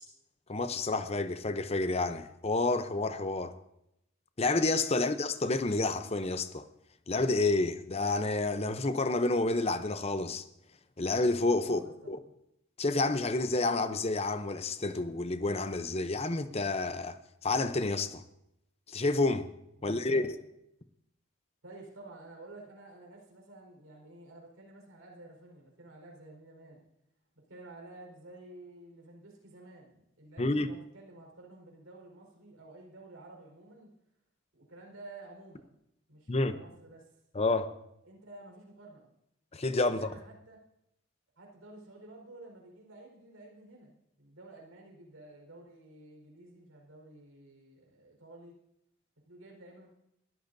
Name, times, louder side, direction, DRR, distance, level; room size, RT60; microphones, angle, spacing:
voice 1, 0.5-3.5 4.4-6.7 7.1-10.4 11.0-11.8 12.1-12.2 12.8-18.2 18.9-19.5 19.8-20.4 30.4-30.7 36.3-36.6 37.3-37.7 39.5-40.1, left 2 dB, 30° left, 0.7 m, -29 dB
voice 2, 11.7-12.2 19.8-20.3 21.6-26.8 27.5-33.9 34.5-35.7 36.1-37.1 38.0-39.1 39.9-40.6 41.4-48.6 49.3-49.9, right 2 dB, 85° right, 4.6 m, -51 dB
21.0 x 13.5 x 2.7 m
head